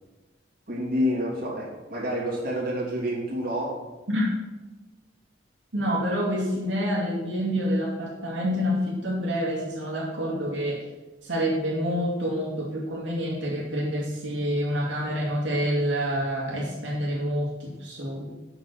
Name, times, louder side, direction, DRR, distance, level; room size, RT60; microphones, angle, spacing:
voice 1, 0.7-3.8, equal, 50° right, -5 dB, 3.1 m, -28 dB
voice 2, 5.7-10.8 11.2-18.3, equal, 85° right, -5 dB, 2.6 m, -27 dB
7.9 x 6.1 x 6.3 m, 1.1 s
head